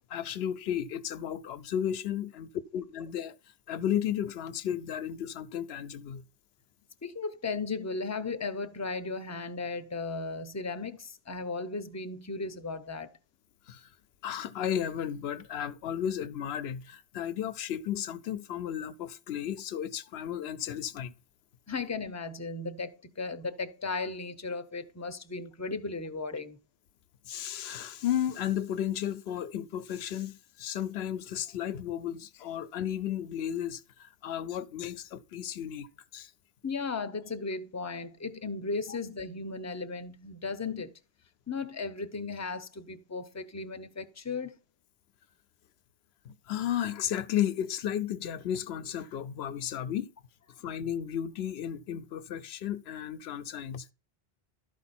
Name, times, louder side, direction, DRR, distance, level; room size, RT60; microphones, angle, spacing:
voice 1, 0.1-3.4 3.7-6.2 13.7-13.9 14.2-21.1 27.3-35.9 36.1-36.3 38.9-39.0 46.2-50.1 50.6-53.9, left 10 dB, 85° left, 0.8 m, -33 dB
voice 2, 7.0-13.1 21.7-26.6 36.6-40.9 41.5-44.6, left 4 dB, 20° left, 0.6 m, -36 dB
12.5 x 5.0 x 4.2 m
omnidirectional pair, 1.0 m